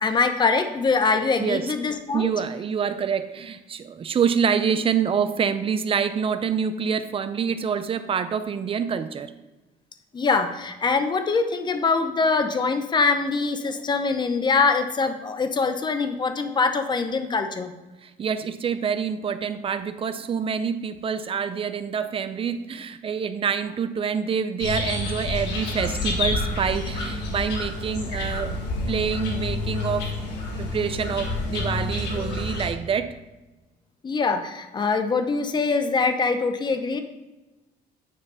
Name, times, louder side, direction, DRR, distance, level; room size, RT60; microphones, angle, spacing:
voice 1, 0.0-2.3 10.1-17.7 34.0-37.0, left 4 dB, 25° left, 8 dB, 0.7 m, -23 dB
voice 2, 1.4-1.7 2.1-9.3 18.0-28.6 28.9-30.2 30.6-33.2, right 7 dB, 35° right, 11 dB, 0.5 m, -26 dB
sound 1, 24.6-32.7, left 2 dB, 80° left, 1.7 m, -28 dB
9.6 x 3.3 x 5.4 m, 1.1 s
cardioid pair, 110°, 17 cm